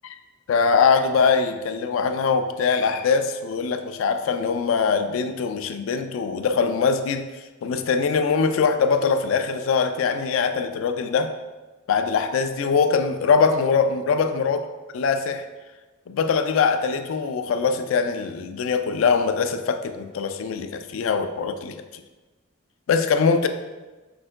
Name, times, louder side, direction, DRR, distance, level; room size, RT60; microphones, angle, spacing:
voice 1, 0.5-7.2 7.6-11.3 11.9-14.6 14.9-15.5 16.1-22.0 22.9-23.5, left 5 dB, 70° left, 8 dB, 0.3 m, -22 dB
4.7 x 4.3 x 2.2 m, 1.2 s
head